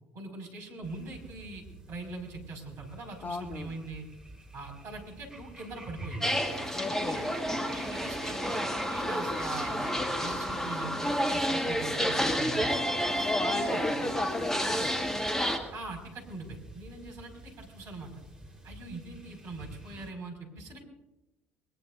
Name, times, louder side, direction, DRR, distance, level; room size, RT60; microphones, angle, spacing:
voice 1, 0.1-4.1 4.5-6.5 7.1-7.4 7.7-12.7 13.5-14.1 15.7-18.2 18.6-20.8, right 3 dB, 45° right, 2 dB, 5.8 m, -42 dB
sound 1, 0.8-20.1, right 1 dB, 10° right, 4.4 m, -49 dB
voice 2, 3.2-3.8 6.7-7.3 13.2-15.1, left 4 dB, 25° left, 10 dB, 1.0 m, -36 dB
sound 2, 6.2-15.6, equal, 5° left, 2.3 m, -30 dB
22.5 x 22.5 x 2.7 m, 0.99 s
figure-of-eight pair, 60°, 7 cm